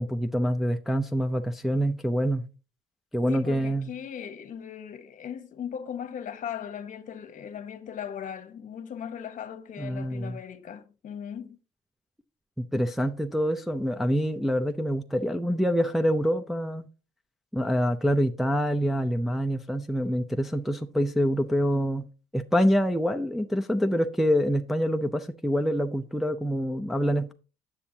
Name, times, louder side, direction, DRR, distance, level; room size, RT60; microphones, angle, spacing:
voice 1, 0.0-2.4 3.1-3.9 9.8-10.4 12.7-16.9 17.5-22.1 22.3-27.3, equal, ahead, 0.4 m, -26 dB
voice 2, 3.3-11.6, left 8 dB, 50° left, 1.1 m, -38 dB
8.5 x 7.1 x 2.7 m
cardioid pair, 110°, 17 cm